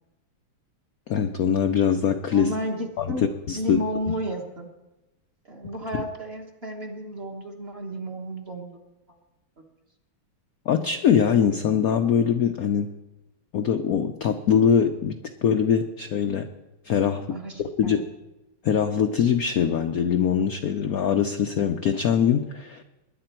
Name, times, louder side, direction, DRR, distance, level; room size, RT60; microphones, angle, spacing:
voice 1, 1.1-2.5 3.0-3.1 3.5-3.8 10.7-12.9 13.5-16.5 16.8-17.3 17.8-18.0 18.6-22.8, left 8 dB, 70° left, 6 dB, 0.8 m, -22 dB
voice 2, 2.3-3.2 3.5-4.7 5.4-8.7 17.3-18.0, right 1 dB, 35° right, 1 dB, 1.3 m, -32 dB
20.5 x 10.5 x 4.5 m, 1.0 s
omnidirectional pair, 2.3 m